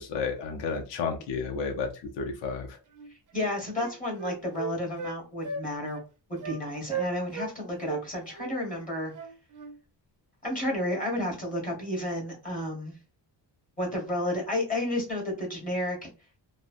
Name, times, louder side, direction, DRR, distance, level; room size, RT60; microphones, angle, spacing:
voice 1, 0.0-2.8, left 5 dB, 75° left, 3 dB, 0.8 m, -32 dB
Wind instrument woodwind instrument, 2.9-3.1 3.4-5.2 5.4-5.6 5.9-6.1 6.4-6.6 6.9-7.5 7.8-9.7, right 6 dB, 45° right, 0.7 m, -36 dB
voice 2, 3.3-6.0 6.3-9.1 10.4-13.0 13.8-16.1, left 1 dB, 20° left, -2 dB, 1.4 m, -31 dB
3.2 x 2.1 x 2.5 m, 0.33 s
cardioid pair, 140°, 43 cm